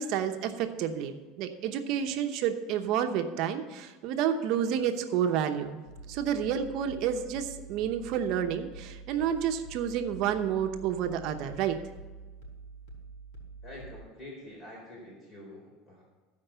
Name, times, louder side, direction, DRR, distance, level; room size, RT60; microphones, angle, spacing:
voice 1, 0.0-5.8 6.1-11.8, right 9 dB, 55° right, 6 dB, 0.8 m, -30 dB
sound 1, 5.8-14.0, right 4 dB, 75° left, 4.0 m, -47 dB
voice 2, 13.6-16.0, left 1 dB, 35° left, -3 dB, 3.7 m, -46 dB
14.5 x 5.3 x 6.8 m, 1.3 s
supercardioid pair, 135°, 0 cm